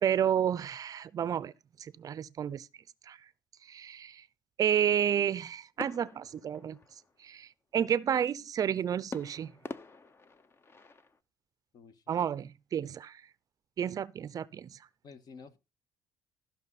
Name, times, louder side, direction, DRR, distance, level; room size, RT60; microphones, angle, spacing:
voice 1, 0.0-1.5 1.8-2.7 3.1-3.2 3.7-4.2 4.6-6.8 7.2-9.5 12.1-13.2 13.8-14.8, right 9 dB, 40° right, 0.6 m, -31 dB
sound 1, 5.8-7.3 9.1-11.2, left 3 dB, 25° left, 0.9 m, -46 dB
voice 2, 11.7-12.1 15.0-15.6, left 5 dB, 45° left, 1.6 m, -51 dB
14.5 x 6.0 x 4.1 m
cardioid pair, 105°, 9 cm